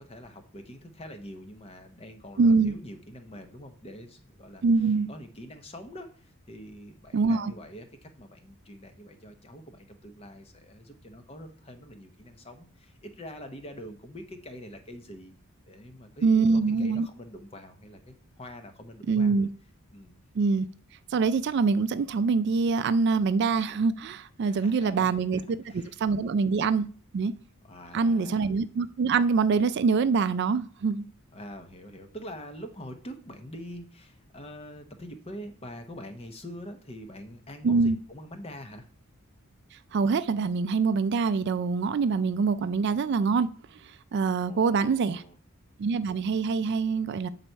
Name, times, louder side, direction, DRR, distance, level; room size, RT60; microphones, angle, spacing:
voice 1, 0.0-15.3 15.6-19.5 19.9-20.1 24.4-26.4 27.6-28.4 31.3-38.9 44.5-45.4, equal, 25° left, 0.7 m, -45 dB
voice 2, 2.4-2.7 4.6-5.1 7.1-7.5 16.2-17.1 19.1-19.5 20.4-20.7 21.1-26.9 27.1-27.3 27.9-31.1 37.6-38.0 39.9-43.5 43.8-45.2 45.8-47.3, right 4 dB, 50° right, 0.3 m, -24 dB
7.6 x 4.0 x 4.5 m
head